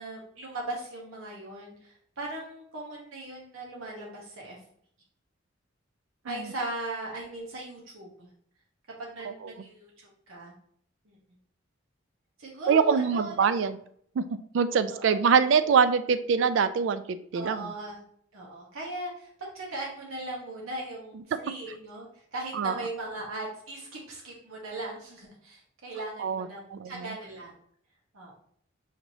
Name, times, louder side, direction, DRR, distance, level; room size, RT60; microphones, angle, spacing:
voice 1, 0.0-4.6 6.2-8.3 9.0-10.5 11.0-11.2 12.4-13.5 14.9-15.1 15.6-15.8 17.3-18.0 18.3-27.5 28.1-28.3, right 2 dB, 85° right, -3 dB, 1.1 m, -38 dB
voice 2, 12.7-13.7 14.2-14.3 14.5-17.7 22.5-22.8 26.2-27.1, right 6 dB, 60° right, 12 dB, 0.3 m, -24 dB
5.7 x 3.0 x 2.7 m, 0.64 s
head